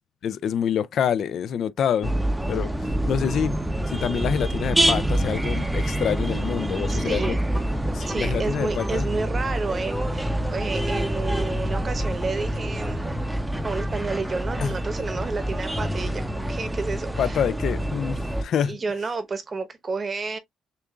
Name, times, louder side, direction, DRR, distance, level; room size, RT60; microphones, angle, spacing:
voice 1, 0.2-2.1 2.5-3.6 3.9-7.3 7.9-9.1 14.6-14.7 17.2-18.8, left 8 dB, 60° left, 0.3 m, -26 dB
sound 1, 2.0-18.4, right 1 dB, 5° right, 0.6 m, -26 dB
voice 2, 6.9-7.4 8.1-13.1 13.6-17.4 18.6-20.4, right 4 dB, 30° right, 0.9 m, -31 dB
6.7 x 2.4 x 2.3 m
cardioid pair, 120°, 0 cm